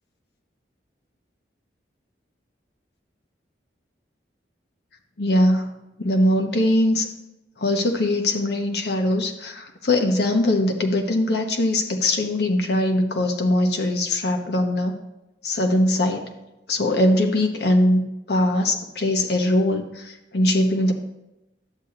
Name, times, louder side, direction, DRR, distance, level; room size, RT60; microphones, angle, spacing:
voice 1, 5.2-7.1 7.6-15.0 15.4-16.2 16.7-20.9, left 1 dB, 65° left, 3 dB, 1.0 m, -21 dB
11.0 x 7.9 x 2.9 m, 0.95 s
head